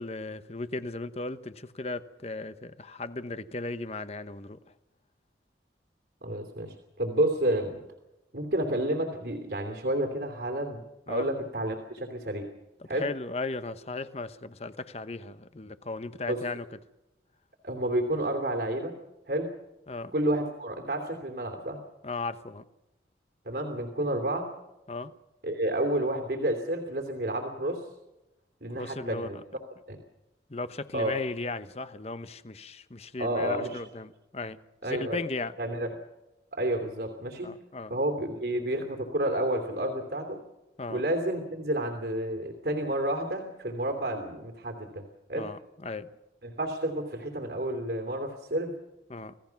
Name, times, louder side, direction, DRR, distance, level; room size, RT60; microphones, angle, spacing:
voice 1, 0.0-4.6 11.1-11.3 12.8-16.7 19.9-20.1 22.0-22.6 24.9-25.1 28.7-29.3 30.5-34.6 34.8-35.5 37.4-37.9 40.8-41.0 45.3-46.1 49.1-49.3, left 3 dB, 35° left, 12 dB, 1.0 m, -36 dB
voice 2, 6.2-7.8 8.3-10.8 11.1-12.5 12.9-13.1 16.3-16.4 17.6-18.9 19.3-19.5 20.1-21.8 23.5-24.5 25.4-27.9 28.6-29.4 29.9-30.0 30.9-31.2 33.2-33.8 34.8-35.2 35.6-36.0 36.5-37.5 37.9-40.4 40.9-45.0 45.3-45.5 46.4-48.7, right 1 dB, 65° right, 4 dB, 3.0 m, -30 dB
27.5 x 17.5 x 5.9 m, 0.96 s
head